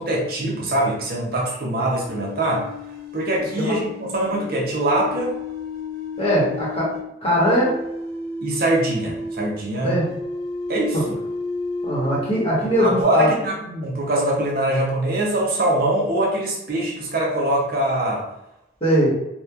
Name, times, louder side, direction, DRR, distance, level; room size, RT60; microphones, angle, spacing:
voice 1, 0.0-2.7 3.1-5.3 8.4-10.0 10.7-11.1 12.8-18.3, right 1 dB, 50° right, -2 dB, 0.5 m, -23 dB
sound 1, 2.1-7.1 7.5-9.5 10.0-12.3 12.6-13.0, left 2 dB, 70° right, 1.0 m, -32 dB
voice 2, 6.2-6.9 7.2-7.8 9.8-10.1 10.9-11.0 11.8-13.4 18.8-19.1, equal, 30° left, -7 dB, 0.9 m, -20 dB
2.8 x 2.1 x 2.3 m, 0.87 s
head